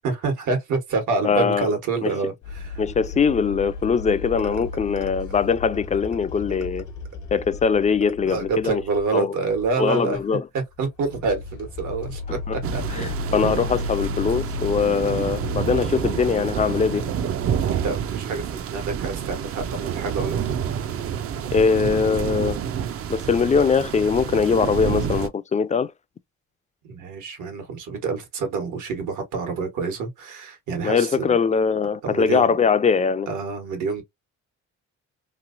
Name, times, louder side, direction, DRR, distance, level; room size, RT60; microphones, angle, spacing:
voice 1, 0.0-2.8 4.4-4.6 8.2-10.2 10.5-13.2 17.7-20.6 26.8-31.3 32.0-32.6 33.3-34.0, right 4 dB, 80° right, 1.3 m, -27 dB
voice 2, 1.2-1.7 2.0-2.1 2.8-6.8 7.3-8.8 9.1-9.3 9.8-10.4 12.3-12.6 12.9-17.1 21.5-22.6 23.1-25.9 30.8-33.3, left 6 dB, 25° left, 0.3 m, -22 dB
sound 1, 2.4-9.2 9.5-9.8 10.1-10.3 10.7-17.5, left 4 dB, 75° left, 1.1 m, -35 dB
sound 2, 12.6-25.3, right 8 dB, 50° right, 0.5 m, -28 dB
3.1 x 2.7 x 2.5 m
cardioid pair, 90°, 30 cm